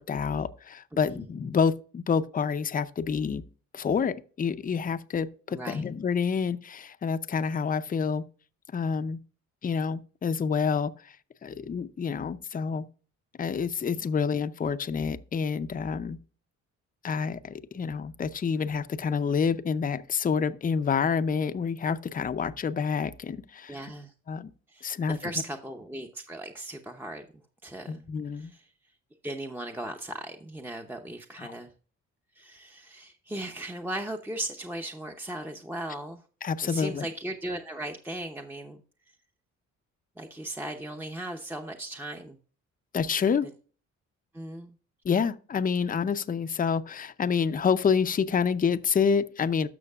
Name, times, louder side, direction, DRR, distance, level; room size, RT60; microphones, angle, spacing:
voice 1, 0.0-3.4 3.7-8.2 8.7-9.2 9.6-10.9 11.4-12.9 13.4-16.2 17.0-23.9 24.3-24.5 24.8-25.3 27.9-28.5 31.4-31.5 36.4-37.1 42.9-43.5 45.0-49.7, left 6 dB, 30° left, 0.6 m, -28 dB
voice 2, 0.9-1.3 5.5-5.9 23.7-24.1 24.7-27.2 27.6-28.0 28.4-28.7 29.2-31.7 32.3-36.2 36.6-38.8 40.2-42.4 44.3-44.7, right 1 dB, 5° right, 0.8 m, -37 dB
12.0 x 6.3 x 2.4 m
cardioid pair, 90°, 30 cm